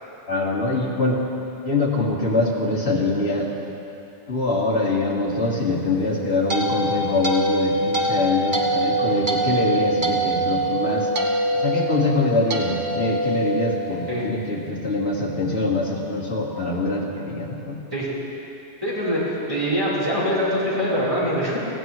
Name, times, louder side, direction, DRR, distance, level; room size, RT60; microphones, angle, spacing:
voice 1, 0.3-1.2 1.6-3.5 4.3-11.1 11.5-17.8, left 2 dB, 65° left, -4 dB, 2.0 m, -24 dB
sound 1, 6.0-14.3, right 1 dB, 45° right, 1.3 m, -24 dB
voice 2, 18.8-21.6, equal, 25° right, -9 dB, 3.7 m, -23 dB
18.0 x 15.5 x 3.0 m, 3.0 s
omnidirectional pair, 1.2 m